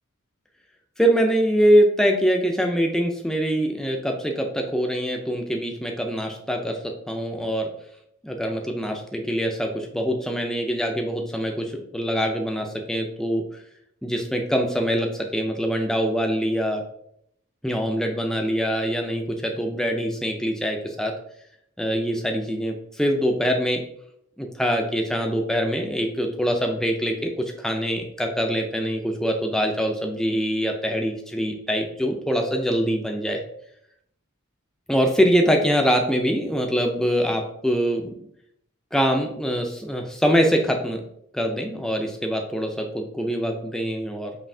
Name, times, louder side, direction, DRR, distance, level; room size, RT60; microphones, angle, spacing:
voice 1, 1.0-7.7 8.2-13.4 14.0-16.8 17.6-21.1 21.8-23.8 24.4-33.4 34.9-38.2 38.9-41.0 41.3-44.4, equal, 5° left, 2 dB, 0.4 m, -24 dB
5.3 x 2.8 x 2.6 m, 0.72 s
head